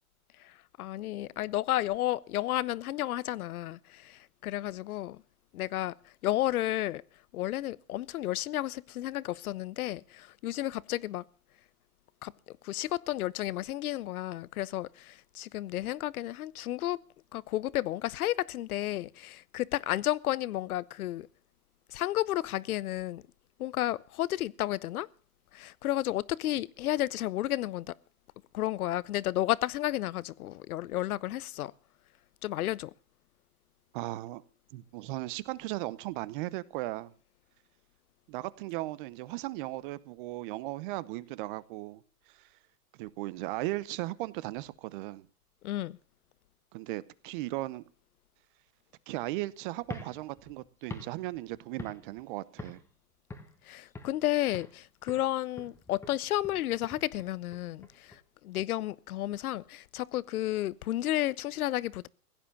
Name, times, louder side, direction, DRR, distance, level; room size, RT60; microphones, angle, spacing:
voice 1, 0.4-5.2 5.5-7.0 7.3-11.2 12.2-12.3 12.6-17.0 17.3-21.3 21.9-23.2 23.6-25.1 25.5-27.9 28.5-31.7 32.4-32.9 45.6-46.0 53.6-62.1, left 14 dB, 65° left, 0.8 m, -32 dB
voice 2, 33.9-34.4 34.7-37.1 38.3-42.0 43.0-45.2 46.7-47.8 49.1-52.8, right 18 dB, 35° right, 0.7 m, -37 dB
sound 1, 49.8-52.3 52.6-52.9 53.3-54.2 54.5-54.8 55.1-58.2, left 2 dB, 5° left, 1.3 m, -46 dB
16.5 x 10.5 x 7.0 m
hypercardioid pair, 140°, 47 cm